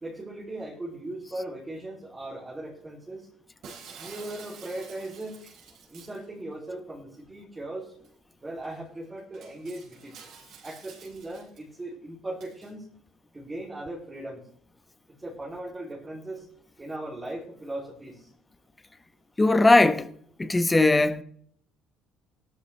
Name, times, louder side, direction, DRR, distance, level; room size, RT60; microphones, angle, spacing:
voice 1, 0.0-3.3 4.0-5.4 5.9-7.9 8.4-10.1 10.6-12.9 13.3-14.4 15.1-16.5 16.8-18.3, right 1 dB, 15° right, 3.1 m, -38 dB
Shatter, 3.6-6.2 8.0-8.1 8.6-8.7 9.3-11.6 12.4-12.7, right 6 dB, 60° right, 4.5 m, -48 dB
voice 2, 19.4-20.1 20.4-21.2, left 2 dB, 15° left, 0.9 m, -19 dB
17.0 x 13.0 x 3.3 m
cardioid pair, 135°, 0 cm